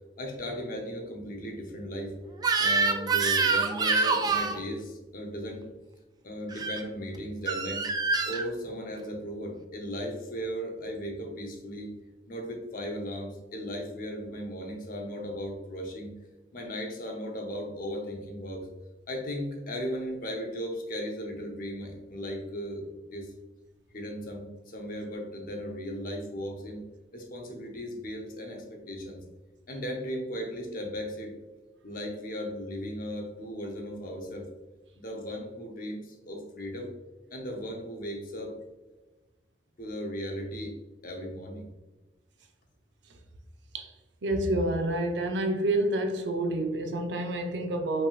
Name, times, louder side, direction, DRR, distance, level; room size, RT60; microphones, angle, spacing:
voice 1, 0.2-2.2 2.6-5.7 6.2-7.9 8.3-11.9 12.3-16.1 16.5-18.7 19.1-23.3 23.9-26.8 27.1-29.2 29.7-31.3 31.8-34.5 35.0-36.9 37.3-38.6 39.8-40.7 41.0-41.7, equal, 50° left, 0.9 m, -36 dB
Crying sobbing / Screech, 2.4-4.6 6.5-6.8 7.5-8.4, right 4 dB, 20° right, 0.3 m, -26 dB
voice 2, 44.2-48.1, right 1 dB, 80° right, 0.7 m, -28 dB
5.4 x 3.5 x 2.4 m
head